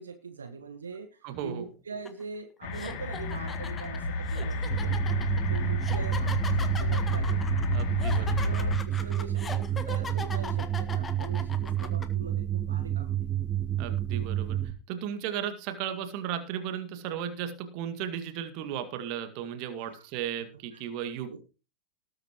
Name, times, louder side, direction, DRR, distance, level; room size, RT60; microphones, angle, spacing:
voice 1, 0.0-7.4 8.0-13.1 19.8-20.1 20.7-20.8 21.3-21.4, right 5 dB, 70° right, 7 dB, 1.4 m, -42 dB
voice 2, 1.2-1.7 7.7-8.5 13.8-14.6 14.9-21.4, right 9 dB, 45° right, 8 dB, 2.0 m, -35 dB
sound 1, 2.1-2.2 2.7-12.1, left 5 dB, 15° left, 1.5 m, -39 dB
sound 2, 2.6-8.8, left 2 dB, 45° left, 2.6 m, -30 dB
sound 3, 4.7-14.7, right 11 dB, 15° right, 1.4 m, -30 dB
19.0 x 8.7 x 3.1 m, 0.31 s
figure-of-eight pair, 90°, 0 cm